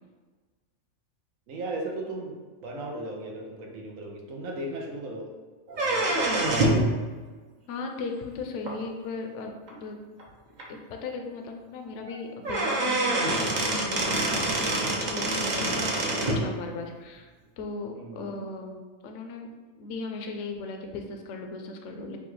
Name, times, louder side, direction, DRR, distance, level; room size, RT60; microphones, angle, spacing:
voice 1, 1.5-2.3 2.6-5.3 5.7-6.2 17.9-18.5, right 1 dB, 90° right, 0 dB, 1.2 m, -36 dB
sound 1, 5.7-6.9 8.7-8.8 9.7-9.8 10.2-10.3 10.6-10.7 12.1-12.2 12.4-16.4, right 2 dB, 45° right, 0.6 m, -26 dB
voice 2, 7.7-10.0 10.7-14.7 15.0-17.3 17.6-18.8 19.0-19.5 19.8-22.2, left 3 dB, 70° left, 3 dB, 0.9 m, -37 dB
5.3 x 2.3 x 3.1 m, 1.4 s
omnidirectional pair, 1.3 m